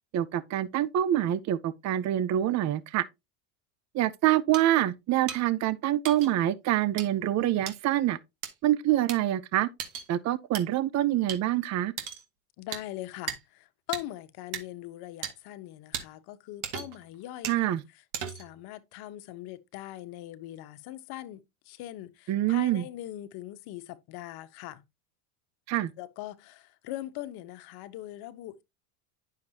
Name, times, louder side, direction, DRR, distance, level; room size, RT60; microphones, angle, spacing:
voice 1, 0.1-3.0 3.9-8.2 8.6-9.7 10.1-11.9 17.5-17.8 22.3-22.8 25.7-25.9, right 13 dB, 35° right, 0.7 m, -26 dB
sound 1, 4.5-4.6 5.3-5.4 6.0-6.3 7.0-7.1 7.7-7.8 8.4-8.5 9.1-9.2 9.8-10.1 10.5-10.6 11.3-11.4 12.0-12.2 12.7-12.8 13.3-13.4 13.9-14.0 14.5-14.6 15.2-15.3 15.9-16.0 16.6-17.0 17.4-17.6 18.1-18.5, right 9 dB, 65° right, 2.1 m, -35 dB
voice 2, 12.6-17.7 18.2-24.8 26.0-28.6, left 14 dB, 55° left, 1.1 m, -41 dB
9.5 x 6.6 x 2.8 m
supercardioid pair, 110°, 45 cm